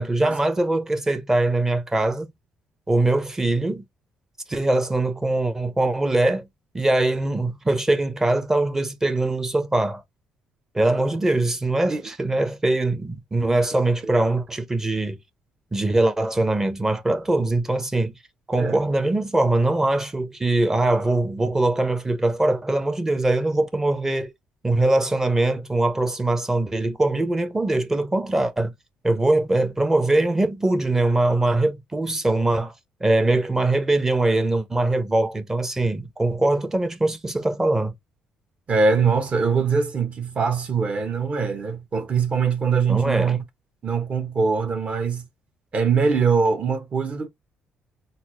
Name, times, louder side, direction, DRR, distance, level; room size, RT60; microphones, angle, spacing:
voice 1, 0.0-2.3 2.9-3.8 4.5-6.5 6.7-10.0 10.7-15.2 15.7-18.1 18.5-24.3 24.6-28.7 29.0-32.7 33.0-37.9 42.9-43.4, right 2 dB, 15° right, 0.7 m, -22 dB
voice 2, 38.7-43.4 43.8-45.2 45.7-47.3, right 5 dB, 45° right, 1.0 m, -22 dB
4.0 x 2.1 x 2.9 m
cardioid pair, 90°, 3 cm